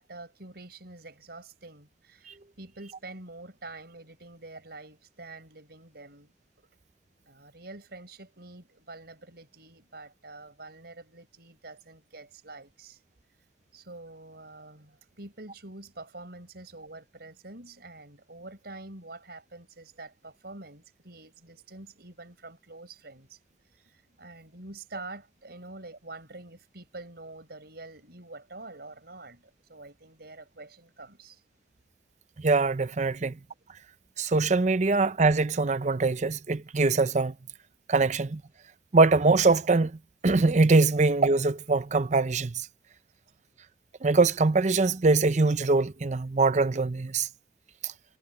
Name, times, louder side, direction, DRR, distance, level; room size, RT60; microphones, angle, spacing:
voice 1, 0.0-6.3 7.3-13.0 13.7-23.4 23.9-29.4 29.7-31.4, right 2 dB, 60° right, 5.8 m, -46 dB
voice 2, 32.4-33.3 34.2-37.3 37.9-38.4 38.9-42.7 44.0-47.3 47.8-47.9, right 3 dB, 40° right, 0.6 m, -23 dB
head